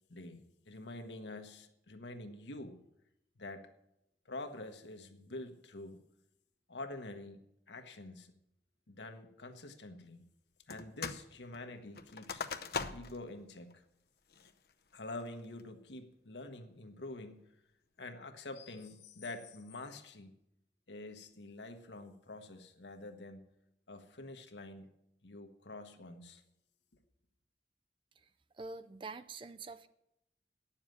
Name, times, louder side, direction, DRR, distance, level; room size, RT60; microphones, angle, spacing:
voice 1, 0.1-2.8 3.4-3.7 4.2-6.0 6.7-7.4 7.7-8.3 8.9-10.2 10.7-12.4 12.9-13.8 14.9-17.5 18.0-20.3 20.9-23.4 23.9-24.9 25.2-26.4, left 2 dB, 80° left, 7 dB, 1.2 m, -47 dB
sound 1, 10.7-11.3 11.5-13.2 13.7-13.8 14.3-14.7 15.2-15.6, left 5 dB, 55° left, 0.6 m, -41 dB
voice 2, 28.2-29.9, right 3 dB, 30° right, 12 dB, 0.4 m, -46 dB
9.5 x 7.2 x 9.0 m, 0.81 s
head